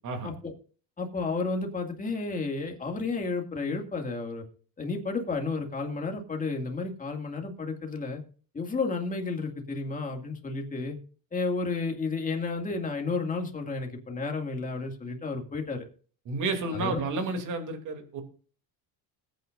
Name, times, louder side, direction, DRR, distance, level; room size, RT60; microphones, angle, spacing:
voice 1, 1.0-4.4 4.8-8.2 8.5-11.0 11.3-15.8 16.7-17.0, left 3 dB, 20° left, 2 dB, 2.2 m, -32 dB
voice 2, 16.3-18.2, right 3 dB, 45° right, 5 dB, 2.8 m, -31 dB
20.5 x 9.3 x 2.6 m, 0.42 s
cardioid pair, 130°, 43 cm